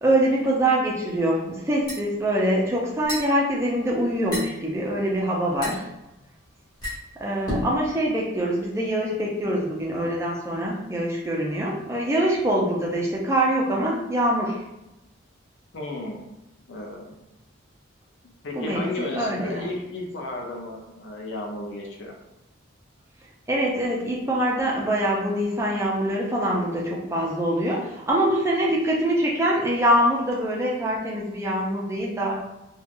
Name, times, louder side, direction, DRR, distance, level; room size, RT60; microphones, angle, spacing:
voice 1, 0.0-5.8 7.2-14.6 18.5-19.6 23.5-32.3, right 1 dB, 15° right, -3 dB, 0.4 m, -24 dB
sound 1, 1.7-7.9, left 1 dB, 20° left, 1.1 m, -35 dB
voice 2, 15.7-16.2 16.7-17.1 18.4-22.1, left 2 dB, 65° left, 0 dB, 0.5 m, -34 dB
2.8 x 2.3 x 2.5 m, 0.94 s
head